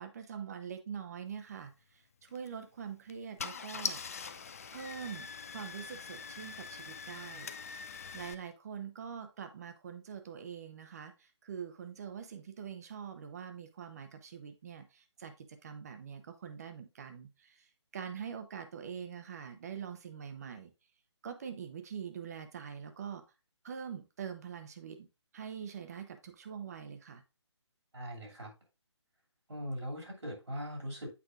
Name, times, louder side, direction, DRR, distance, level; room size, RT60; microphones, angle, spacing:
voice 1, 0.0-4.0 4.7-5.3 5.5-7.5 8.1-17.7 17.9-20.7 21.2-23.2 23.6-25.1 25.3-27.2, right 7 dB, 35° right, 0.9 m, -44 dB
Car / Engine starting, 2.3-2.5 3.1-3.2 3.4-8.3, left 6 dB, 30° left, 0.4 m, -42 dB
voice 2, 27.9-28.5 29.5-31.1, equal, 70° right, 2.6 m, -40 dB
8.4 x 4.8 x 2.5 m
figure-of-eight pair, 150°, 15 cm